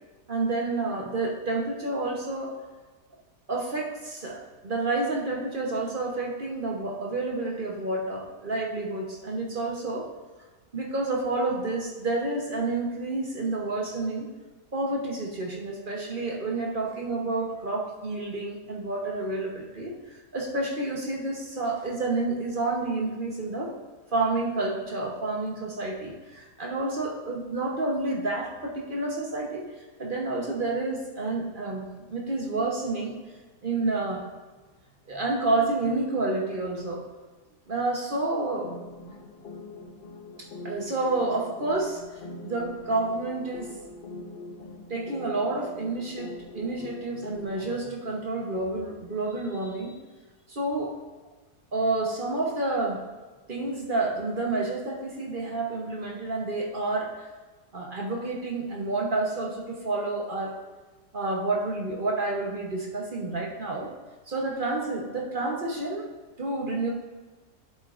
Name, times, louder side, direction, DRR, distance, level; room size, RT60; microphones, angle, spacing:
voice 1, 0.3-2.6 3.5-10.1 10.7-14.3 14.7-23.7 24.1-33.2 33.6-34.3 35.1-37.1 37.7-38.7 40.4-42.0 42.4-43.8 44.9-50.0 50.5-50.9 51.7-53.0 53.5-57.3 57.7-60.5 61.1-63.9 64.3-66.0 66.4-66.9, right 2 dB, 40° right, -1 dB, 0.9 m, -29 dB
sound 1, 38.6-47.9, left 2 dB, 50° left, 0.7 m, -43 dB
11.0 x 7.5 x 2.5 m, 1.3 s
omnidirectional pair, 1.8 m